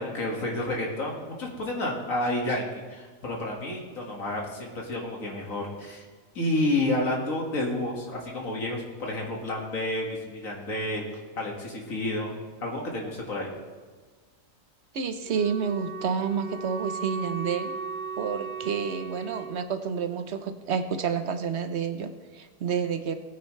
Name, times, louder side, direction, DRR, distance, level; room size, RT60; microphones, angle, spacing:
voice 1, 0.0-6.0 6.3-11.1 11.4-12.4 12.6-13.5, left 1 dB, 80° left, -1 dB, 2.3 m, -30 dB
voice 2, 14.9-17.7 18.2-23.1, right 6 dB, 60° right, 8 dB, 1.1 m, -29 dB
Wind instrument woodwind instrument, 15.2-19.6, right 5 dB, 55° left, 3.3 m, -36 dB
19.0 x 9.1 x 3.2 m, 1.4 s
omnidirectional pair, 1.4 m